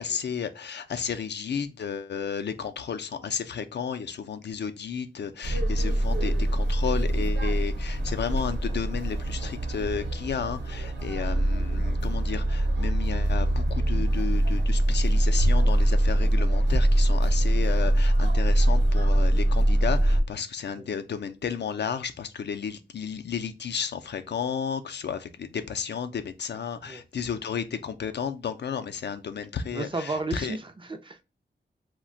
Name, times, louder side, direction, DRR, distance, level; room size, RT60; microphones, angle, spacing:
voice 1, 0.0-30.6, left 7 dB, 70° left, 0.4 m, -33 dB
sound 1, 5.4-20.2, right 1 dB, 80° right, 0.9 m, -23 dB
voice 2, 29.7-31.2, right 3 dB, 30° right, 0.4 m, -33 dB
2.4 x 2.2 x 3.7 m
wide cardioid pair, 85°, 18 cm